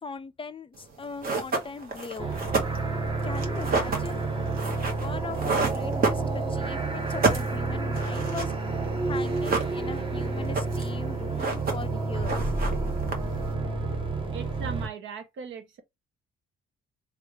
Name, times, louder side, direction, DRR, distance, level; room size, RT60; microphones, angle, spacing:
voice 1, 0.0-2.4 3.2-4.2 5.0-8.6 9.0-12.5, left 5 dB, 25° left, 0.4 m, -40 dB
sound 1, 0.8-0.9 1.2-6.7 7.0-8.6 8.8-8.9 9.2-10.1 10.4-11.0 11.2-12.0 12.2-13.5, right 3 dB, 50° right, 1.3 m, -29 dB
sound 2, 2.2-14.9, right 3 dB, 25° right, 0.9 m, -30 dB
voice 2, 14.3-15.8, right 6 dB, 75° right, 0.9 m, -38 dB
3.4 x 2.4 x 3.2 m
cardioid pair, 90°, 20 cm